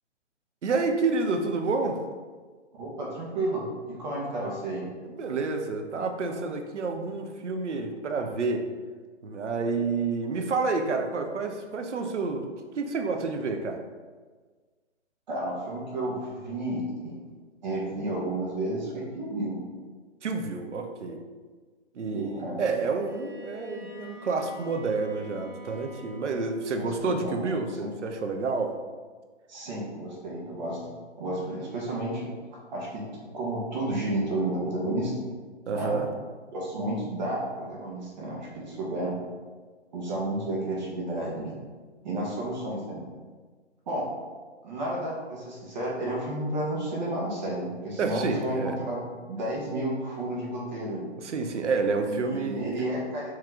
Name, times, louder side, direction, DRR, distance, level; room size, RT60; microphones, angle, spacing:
voice 1, 0.6-2.0 5.0-8.6 9.2-13.8 20.2-21.2 22.0-28.8 35.7-36.1 48.0-48.8 51.2-52.7, right 4 dB, 75° right, 5 dB, 0.8 m, -29 dB
voice 2, 2.7-4.9 15.3-17.2 17.6-19.6 22.1-22.6 26.8-27.5 27.8-27.9 29.5-30.9 31.2-32.3 32.7-35.1 35.7-36.0 36.5-39.1 39.9-41.6 42.0-43.0 43.9-44.1 44.6-49.0 49.3-51.1 52.1-53.3, right 1 dB, 40° right, -4 dB, 1.2 m, -32 dB
Bowed string instrument, 22.9-26.7, equal, ahead, 1.0 m, -46 dB
4.8 x 2.9 x 3.7 m, 1.4 s
hypercardioid pair, 150°, 35 cm